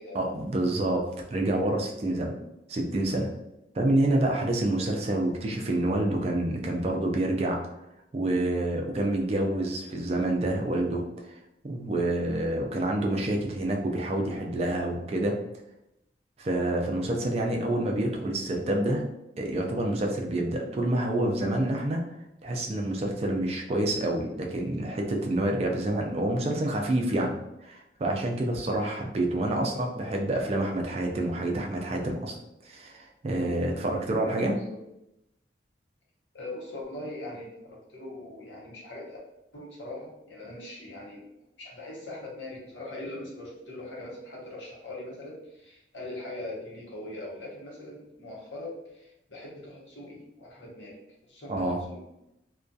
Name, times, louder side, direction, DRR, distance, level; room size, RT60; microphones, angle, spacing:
voice 1, 0.1-2.3 2.7-3.3 3.7-7.6 8.1-11.4 11.6-15.4 16.4-19.1 19.4-22.0 22.4-27.4 27.6-32.4 32.6-34.6 51.5-51.8, right 1 dB, 35° right, 1 dB, 0.3 m, -28 dB
voice 2, 29.4-29.9 34.5-34.8 36.3-39.2 39.5-41.2 41.6-51.0 51.3-52.0, left 1 dB, 90° left, -4 dB, 0.8 m, -41 dB
2.3 x 2.2 x 2.6 m, 0.87 s
head